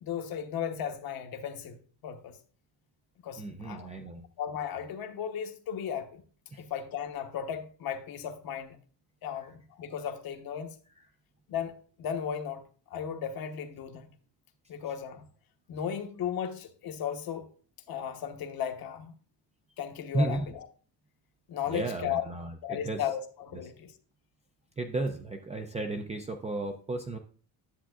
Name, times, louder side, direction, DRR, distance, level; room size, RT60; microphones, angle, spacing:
voice 1, 0.0-1.8 2.0-2.4 3.2-3.9 4.4-6.2 6.6-8.8 9.2-10.8 11.5-11.7 12.0-12.6 12.9-14.1 14.7-15.3 15.7-17.5 17.9-19.1 19.8-20.6 21.5-22.2 22.6-23.9, left 8 dB, 55° left, 1.0 m, -35 dB
voice 2, 3.4-4.2 6.5-6.6 9.3-9.5 20.1-20.5 21.7-23.0 24.8-27.2, right 2 dB, 15° right, 0.3 m, -33 dB
10.0 x 7.3 x 2.4 m
cardioid pair, 150°, 44 cm